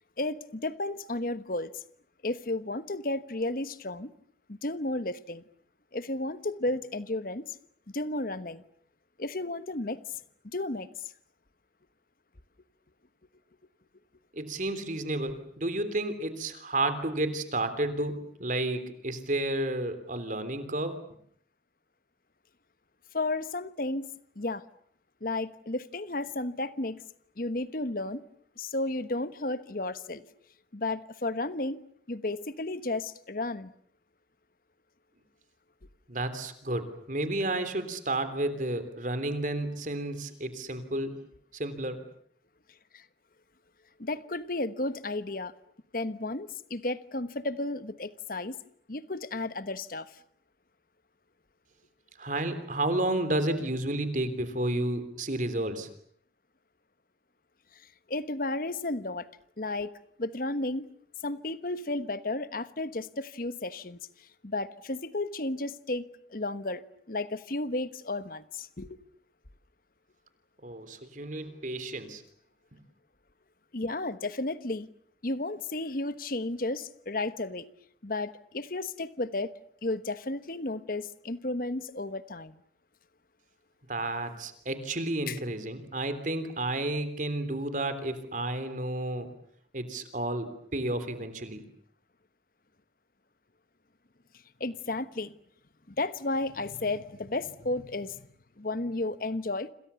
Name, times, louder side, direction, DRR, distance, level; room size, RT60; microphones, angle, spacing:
voice 1, 0.2-1.8 2.2-4.1 4.5-5.4 5.9-7.6 7.9-8.6 9.2-10.0 10.4-10.9 23.1-24.1 24.4-24.6 25.2-27.0 27.4-28.2 28.6-30.3 30.7-31.8 32.1-33.7 42.9-43.0 44.0-45.5 45.9-48.6 48.9-50.2 57.7-59.3 59.6-60.9 61.2-66.8 67.1-69.0 73.7-74.9 75.2-77.7 78.0-79.5 79.8-82.6 85.3-85.4 94.6-95.3 95.9-98.3 98.6-99.7, left 2 dB, 50° left, 1.2 m, -33 dB
voice 2, 14.3-21.0 36.1-41.2 41.5-42.0 52.2-55.9 70.6-72.2 83.9-89.3 89.7-91.6, right 1 dB, 45° right, 3.4 m, -31 dB
29.0 x 27.5 x 7.1 m
head